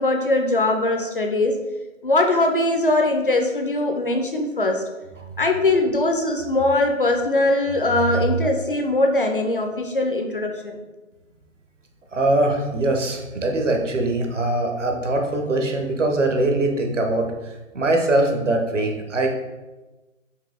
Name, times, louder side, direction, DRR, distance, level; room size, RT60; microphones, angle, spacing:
voice 1, 0.0-1.6 2.0-4.8 5.4-10.8, left 2 dB, 45° left, 4 dB, 0.4 m, -21 dB
voice 2, 12.1-17.3 17.7-19.3, right 2 dB, 65° right, 3 dB, 0.9 m, -22 dB
4.7 x 2.8 x 3.7 m, 1.1 s
figure-of-eight pair, 145°, 39 cm